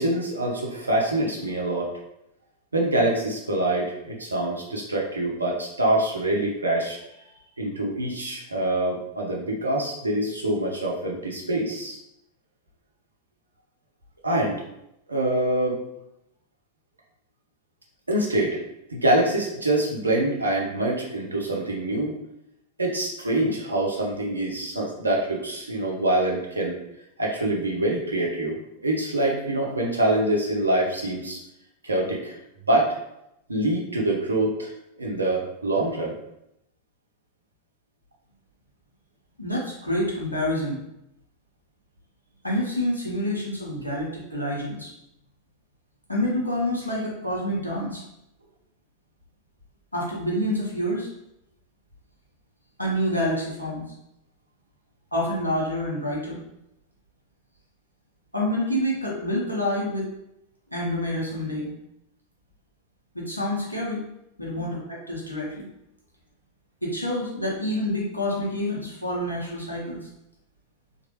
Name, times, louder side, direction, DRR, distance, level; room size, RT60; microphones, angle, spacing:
voice 1, 0.0-1.9 2.7-7.0 7.6-12.0 14.2-14.6 15.1-15.8 18.1-18.6 18.9-22.2 22.8-26.8 27.2-31.4 31.8-32.4 32.7-33.0 33.5-36.2 64.5-64.7, right 1 dB, 80° right, -1 dB, 0.6 m, -25 dB
voice 2, 39.4-40.8 42.4-44.9 46.1-48.0 49.9-51.1 52.8-53.8 55.1-56.4 58.3-60.1 60.7-61.7 63.1-64.0 64.4-65.6 66.8-70.1, left 1 dB, 85° left, -4 dB, 0.9 m, -27 dB
3.0 x 2.5 x 2.8 m, 0.83 s
figure-of-eight pair, 90°, 0 cm